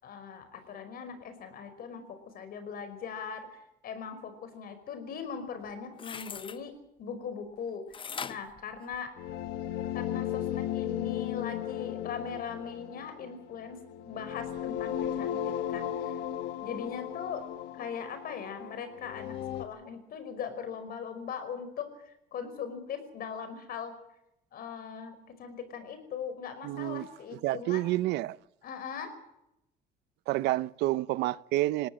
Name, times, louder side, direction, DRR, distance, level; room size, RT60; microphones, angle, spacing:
voice 1, 0.0-6.7 7.0-7.8 8.3-9.1 9.9-16.2 16.6-17.4 17.7-23.9 24.5-27.9 28.6-29.1, left 6 dB, 60° left, 5.1 m, -40 dB
sound 1, 5.6-6.6 7.9-9.5 10.0-10.1, left 6 dB, 30° left, 0.8 m, -41 dB
sound 2, 9.2-19.6, left 11 dB, 90° left, 1.2 m, -36 dB
voice 2, 26.6-27.1 27.4-28.4 30.3-31.9, right 17 dB, 85° right, 0.7 m, -29 dB
20.5 x 18.0 x 7.7 m
cardioid pair, 110°, 17 cm